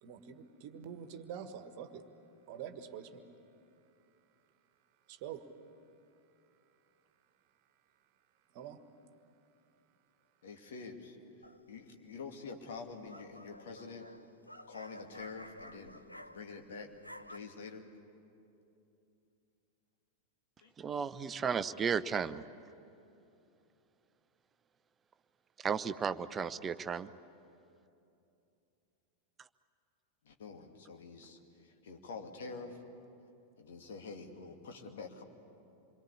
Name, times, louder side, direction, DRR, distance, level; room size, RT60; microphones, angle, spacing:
voice 1, 0.0-2.0 2.5-3.2 5.1-5.5 8.5-8.8, right 8 dB, 45° right, 9 dB, 1.6 m, -45 dB
voice 2, 10.4-14.1 14.7-16.0 16.3-16.9 17.3-17.8 20.6-20.7 30.2-32.8 33.6-35.3, left 4 dB, 60° left, 3 dB, 2.5 m, -47 dB
sound 1, 11.4-11.9 12.7-16.7 16.9-17.4, equal, 90° left, 0.9 m, -52 dB
voice 3, 20.8-22.4 25.6-27.1, right 6 dB, 20° right, 14 dB, 0.7 m, -34 dB
27.5 x 23.0 x 8.5 m, 2.8 s
figure-of-eight pair, 90°, 0 cm